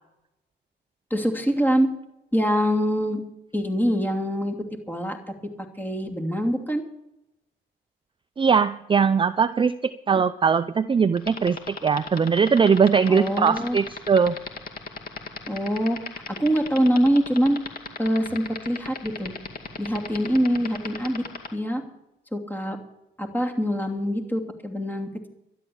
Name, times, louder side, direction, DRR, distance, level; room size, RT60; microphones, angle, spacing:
voice 1, 1.1-1.9 2.3-3.2 3.5-4.5 4.9-5.2 5.8-6.8 13.1-13.8 15.5-16.0 16.3-17.6 18.0-19.3 19.8-21.2 21.5-21.8 22.3-22.8 23.2-25.3, equal, 10° left, 3 dB, 2.8 m, -24 dB
voice 2, 8.4-14.4, right 6 dB, 25° right, 12 dB, 0.5 m, -21 dB
sound 1, 11.2-21.5, left 5 dB, 50° left, 2.4 m, -34 dB
12.5 x 11.0 x 7.1 m, 0.86 s
cardioid pair, 90°, 20 cm